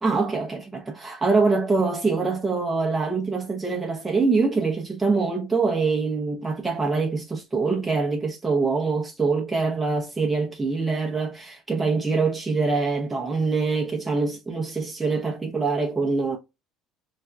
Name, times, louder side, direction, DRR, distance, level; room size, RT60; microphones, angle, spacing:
voice 1, 0.0-16.4, right 4 dB, 20° right, 0.7 m, -24 dB
4.2 x 2.2 x 2.3 m
hypercardioid pair, 60°, 0 cm